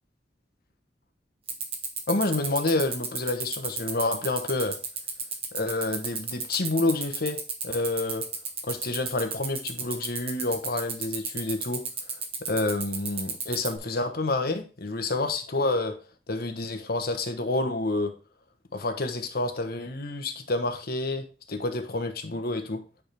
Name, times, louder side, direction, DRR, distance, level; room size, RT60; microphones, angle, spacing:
sound 1, 1.5-13.8, right 5 dB, 35° right, 1.5 m, -31 dB
voice 1, 2.1-4.8 5.5-8.3 8.7-11.8 12.5-15.9 16.3-18.1 18.7-22.8, left 2 dB, 60° left, 6 dB, 1.3 m, -28 dB
9.1 x 4.9 x 3.5 m, 0.34 s
head